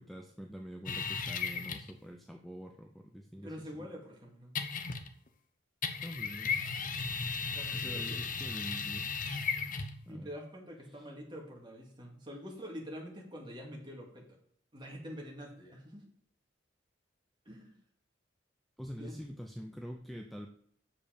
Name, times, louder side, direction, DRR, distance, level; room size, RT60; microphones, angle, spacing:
voice 1, 0.0-3.5 3.8-3.9 6.0-6.7 7.7-9.1 10.1-10.3 10.9-11.0 18.8-20.5, equal, ahead, 2 dB, 0.6 m, -45 dB
sound 1, 0.9-2.0 4.6-5.3 5.8-10.0, left 5 dB, 45° left, 0.8 m, -35 dB
voice 2, 3.4-4.6 7.5-8.3 10.1-14.4 14.7-16.0 17.5-17.8 19.0-19.2, equal, 25° right, -1 dB, 2.3 m, -46 dB
7.5 x 6.9 x 5.1 m, 0.64 s
head